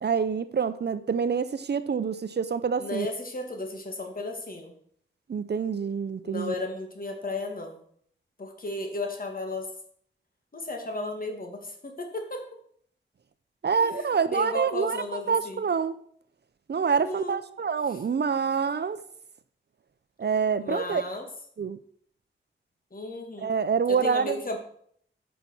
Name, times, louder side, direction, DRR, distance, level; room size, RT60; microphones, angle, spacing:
voice 1, 0.0-3.1 5.3-6.5 13.6-16.0 16.7-19.0 20.2-21.0 21.6-21.8 23.4-24.4, right 6 dB, 55° right, 0.6 m, -26 dB
voice 2, 2.8-4.7 6.2-7.8 8.4-9.7 10.5-12.4 13.7-15.6 17.0-17.4 17.9-18.0 20.6-21.3 22.9-23.6 23.9-24.6, left 2 dB, 45° left, 2.1 m, -34 dB
9.4 x 5.8 x 6.1 m
wide cardioid pair, 90°, 20 cm